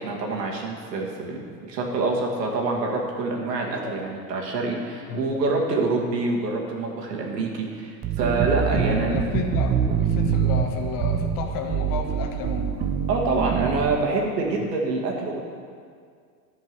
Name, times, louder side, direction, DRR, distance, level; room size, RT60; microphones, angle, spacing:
voice 1, 0.0-9.3 13.1-15.4, right 3 dB, 85° right, -1 dB, 2.1 m, -26 dB
sound 1, 8.0-14.0, right 8 dB, 20° right, 0.6 m, -25 dB
voice 2, 8.5-12.7 14.6-14.7, left 5 dB, 45° left, 3 dB, 1.3 m, -32 dB
10.5 x 5.4 x 6.8 m, 2.1 s
hypercardioid pair, 115°, 48 cm